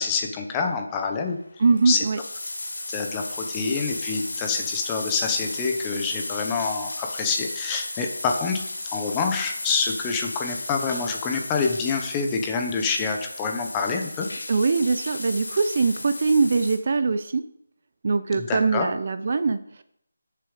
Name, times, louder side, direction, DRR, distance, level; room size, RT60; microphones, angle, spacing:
voice 1, 0.0-1.4 1.9-2.0 2.9-8.6 8.9-14.3 18.3-18.9, left 5 dB, 10° left, 3 dB, 0.9 m, -27 dB
sound 1, 1.4-1.5 1.6-16.8, left 2 dB, 75° left, 3.5 m, -34 dB
voice 2, 1.6-2.2 14.5-17.4 18.0-19.8, right 4 dB, 40° right, 11 dB, 0.6 m, -22 dB
12.0 x 6.9 x 5.0 m, 0.71 s
figure-of-eight pair, 170°, 0 cm